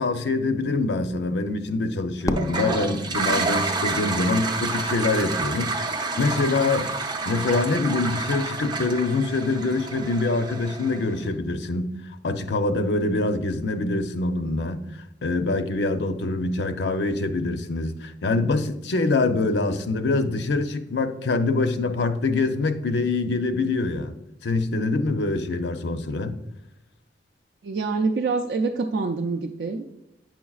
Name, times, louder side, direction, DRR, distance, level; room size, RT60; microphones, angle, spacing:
voice 1, 0.0-6.9 7.3-14.8 15.2-24.1 24.4-26.4, left 3 dB, 70° left, 0.6 m, -25 dB
Fireworks, 2.2-4.4, left 1 dB, 20° left, 0.3 m, -33 dB
Toilet flush, 2.3-11.2, right 3 dB, 25° right, 0.6 m, -29 dB
voice 2, 27.6-29.9, right 4 dB, 70° right, 0.4 m, -26 dB
9.2 x 5.9 x 2.3 m
head